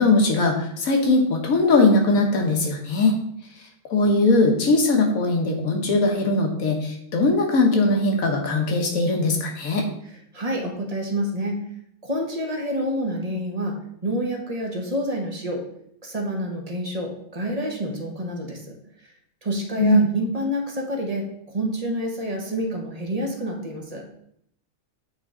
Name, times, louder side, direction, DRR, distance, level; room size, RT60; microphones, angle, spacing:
voice 1, 0.0-3.2 3.9-9.8 19.8-20.1, left 2 dB, 75° left, 2 dB, 1.6 m, -20 dB
voice 2, 10.3-11.6 12.0-13.7 14.0-15.6 16.0-18.8 19.4-24.0, equal, 30° right, 1 dB, 1.1 m, -28 dB
8.7 x 3.5 x 3.7 m, 0.71 s
omnidirectional pair, 1.5 m